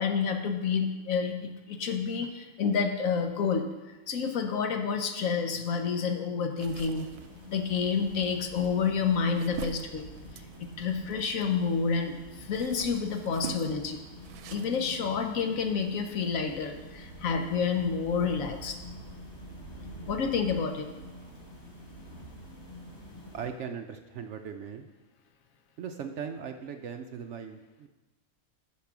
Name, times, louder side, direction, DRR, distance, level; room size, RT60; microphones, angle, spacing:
voice 1, 0.0-3.7 4.1-7.1 7.5-10.0 10.6-14.0 14.5-18.8 20.1-20.9, left 5 dB, 65° left, 5 dB, 1.2 m, -29 dB
sound 1, 6.6-23.5, equal, 45° left, 3.9 m, -47 dB
sound 2, 6.6-11.8 12.2-14.8, right 7 dB, 90° right, 1.1 m, -45 dB
voice 2, 23.3-24.9 25.8-27.9, right 7 dB, 65° right, 6 dB, 0.8 m, -39 dB
8.5 x 6.1 x 6.0 m, 1.2 s
omnidirectional pair, 1.5 m